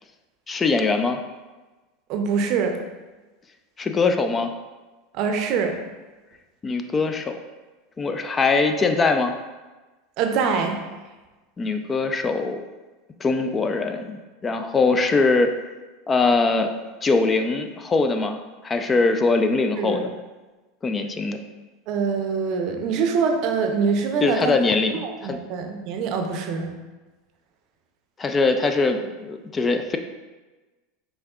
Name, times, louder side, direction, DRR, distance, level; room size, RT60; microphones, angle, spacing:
voice 1, 0.5-1.2 3.8-4.5 6.6-7.4 8.0-9.3 11.6-12.6 13.2-15.5 16.1-16.7 17.0-18.4 18.6-20.1 20.8-21.4 24.2-25.4 28.2-30.0, left 3 dB, 25° left, 6 dB, 0.4 m, -22 dB
voice 2, 2.1-2.8 5.1-5.8 10.2-10.8 19.8-20.0 21.9-24.5 24.9-26.7, right 5 dB, 55° right, 4 dB, 0.6 m, -24 dB
5.2 x 3.7 x 2.4 m, 1.2 s
hypercardioid pair, 85°, 0 cm